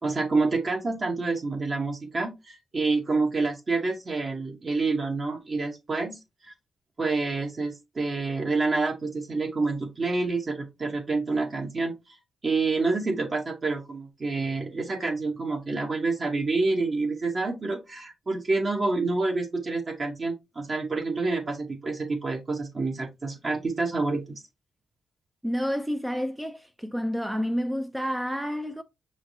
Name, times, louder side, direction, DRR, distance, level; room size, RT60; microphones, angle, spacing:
voice 1, 0.0-6.5 7.0-24.3, right 3 dB, 35° right, 0.8 m, -28 dB
voice 2, 25.4-28.8, equal, 5° right, 0.3 m, -29 dB
6.1 x 3.2 x 2.6 m
cardioid pair, 125°, 0 cm